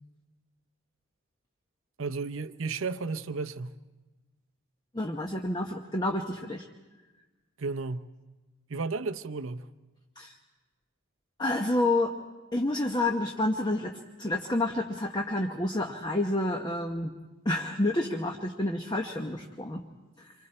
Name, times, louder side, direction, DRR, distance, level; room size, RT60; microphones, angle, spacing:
voice 1, 2.0-3.8 7.6-8.1 8.7-9.7, right 4 dB, 65° right, 0.7 m, -33 dB
voice 2, 4.9-6.7 10.2-10.4 11.4-12.1 12.5-17.1 17.4-19.8 20.2-20.3, left 1 dB, 20° left, 0.9 m, -29 dB
28.0 x 25.0 x 4.4 m
head